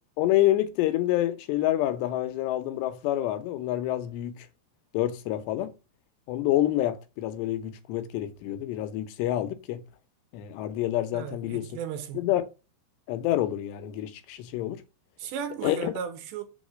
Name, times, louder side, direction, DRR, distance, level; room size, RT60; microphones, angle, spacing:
voice 1, 0.2-4.5 4.9-5.7 6.3-9.8 10.3-11.8 12.1-12.5 13.1-14.8 15.6-15.9, left 13 dB, 85° left, 2.9 m, -27 dB
voice 2, 11.1-12.3 15.2-16.4, right 8 dB, 90° right, 3.3 m, -35 dB
7.2 x 4.1 x 6.2 m
omnidirectional pair, 4.9 m